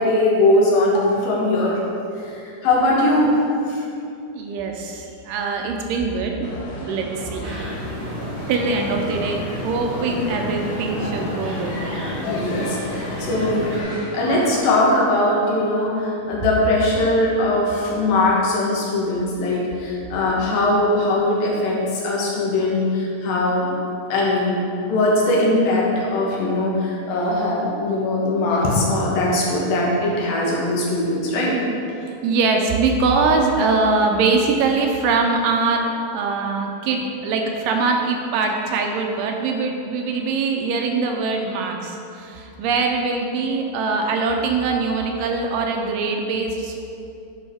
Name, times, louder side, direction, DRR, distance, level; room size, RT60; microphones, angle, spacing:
voice 1, 0.0-1.8 2.6-3.8 12.3-13.8 14.1-21.8 22.0-23.7 24.1-24.6 24.9-31.5, left 1 dB, 90° left, -4 dB, 3.0 m, -20 dB
voice 2, 4.3-6.5 6.8-7.4 8.5-11.8 15.9-16.0 17.8-17.9 19.2-19.3 19.7-19.8 20.4-20.6 32.2-46.8, right 4 dB, 80° right, 2 dB, 2.1 m, -22 dB
sound 1, 6.4-14.6, left 1 dB, 65° left, 1.7 m, -33 dB
sound 2, 7.4-13.8, right 1 dB, 65° right, 1.4 m, -31 dB
10.5 x 4.6 x 3.4 m, 2.6 s
omnidirectional pair, 4.1 m